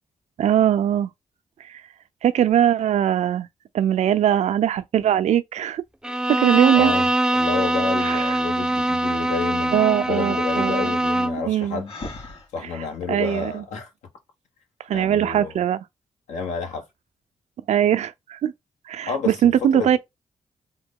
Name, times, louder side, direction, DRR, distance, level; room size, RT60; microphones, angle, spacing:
voice 1, 0.4-1.1 1.6-1.8 2.2-3.5 3.7-5.8 6.3-6.9 8.0-8.4 9.7-10.9 11.5-11.8 13.1-13.6 14.9-15.8 17.7-18.5 18.9-20.0, right 10 dB, 70° right, 0.5 m, -21 dB
Bowed string instrument, 6.0-11.5, right 1 dB, 5° right, 0.4 m, -23 dB
voice 2, 6.7-11.9 12.5-13.9 14.9-15.5 16.3-16.8 19.1-20.0, left 6 dB, 85° left, 1.1 m, -30 dB
Breathing, 11.9-13.6, left 2 dB, 55° left, 2.1 m, -38 dB
3.6 x 2.2 x 3.6 m
supercardioid pair, 50°, 12 cm